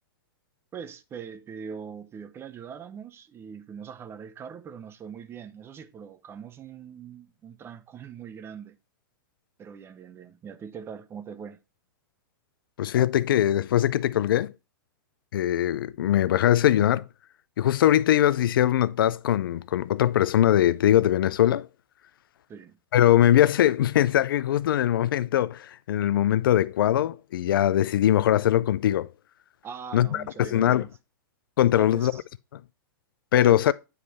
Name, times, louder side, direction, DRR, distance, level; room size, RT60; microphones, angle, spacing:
voice 1, 0.7-8.8 9.6-11.6 22.5-22.8 29.6-30.9 31.7-32.2 33.4-33.7, right 7 dB, 20° right, 0.6 m, -42 dB
voice 2, 12.8-14.5 15.3-17.0 17.6-21.7 22.9-29.1 29.9-30.9 31.6-32.1 33.3-33.7, left 12 dB, 75° left, 0.4 m, -21 dB
9.3 x 3.3 x 4.1 m
hypercardioid pair, 125°, 12 cm